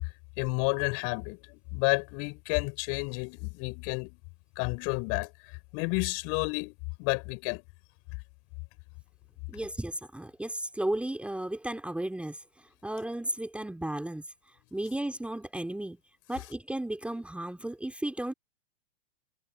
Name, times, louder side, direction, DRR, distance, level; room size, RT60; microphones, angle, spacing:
voice 1, 0.4-4.2 4.6-5.3 5.7-7.6, left 34 dB, 45° left, 6.5 m, -31 dB
voice 2, 9.5-12.4 12.8-14.2 14.7-16.0 16.3-18.3, right 1 dB, 5° right, 3.7 m, -34 dB
hypercardioid pair, 110°, 34 cm